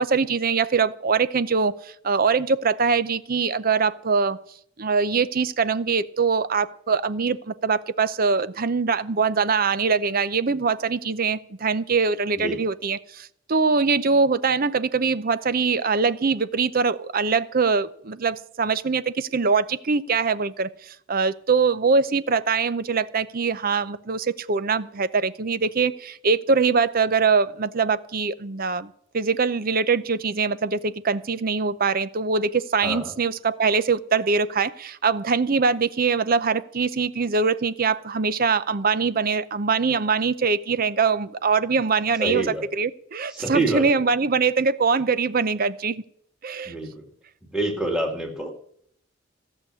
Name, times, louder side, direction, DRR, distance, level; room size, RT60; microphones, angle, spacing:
voice 1, 0.0-4.4 4.8-46.0 46.4-46.7, right 5 dB, 45° right, 15 dB, 0.7 m, -23 dB
voice 2, 42.2-42.6 43.3-44.0 46.7-47.0 47.4-48.5, right 2 dB, 5° right, 1 dB, 2.2 m, -27 dB
16.5 x 6.5 x 9.7 m, 0.66 s
head